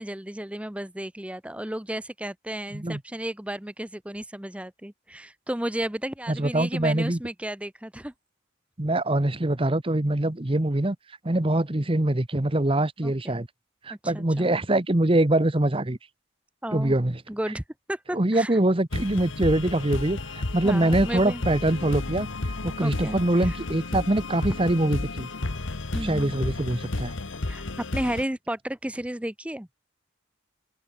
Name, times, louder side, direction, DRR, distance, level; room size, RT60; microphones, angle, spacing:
voice 1, 0.0-8.1 13.0-13.4 13.9-14.5 16.6-17.0 17.3-17.6 17.9-18.6 20.6-21.4 22.8-23.6 25.9-26.3 27.5-27.6 27.9-29.7, right 1 dB, 5° right, 0.7 m, -33 dB
voice 2, 6.3-7.2 8.8-11.0 11.2-13.5 13.8-16.0 16.7-17.2 18.1-22.3 22.6-25.3 26.0-27.1, right 1 dB, 25° right, 1.1 m, -24 dB
sound 1, 18.9-28.2, left 2 dB, 75° left, 1.3 m, -32 dB
open air
head